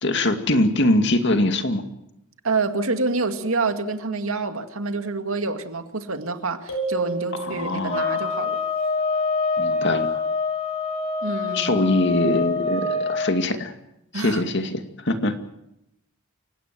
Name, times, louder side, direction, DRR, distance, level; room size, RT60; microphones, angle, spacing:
voice 1, 0.0-1.8 7.3-8.3 9.6-10.2 11.5-13.7 14.1-15.4, left 1 dB, 55° left, 7 dB, 2.4 m, -23 dB
voice 2, 2.4-8.6 11.2-11.8 14.1-14.4, right 3 dB, 80° right, 7 dB, 2.2 m, -27 dB
sound 1, 6.7-8.2, right 3 dB, 75° left, 7.1 m, -30 dB
sound 2, 7.9-13.3, left 4 dB, 25° left, 3.4 m, -25 dB
29.5 x 17.0 x 7.7 m, 0.82 s
head